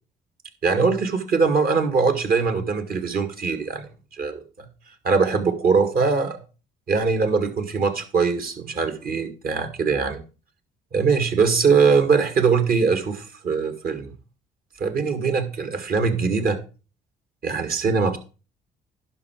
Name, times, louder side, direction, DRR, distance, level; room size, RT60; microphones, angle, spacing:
voice 1, 0.6-3.9 4.1-4.7 5.0-6.4 6.9-10.2 10.9-14.1 14.8-16.6 17.4-18.2, right 5 dB, 55° right, 8 dB, 2.0 m, -22 dB
11.0 x 5.8 x 4.5 m, 0.33 s
supercardioid pair, 60°, 18 cm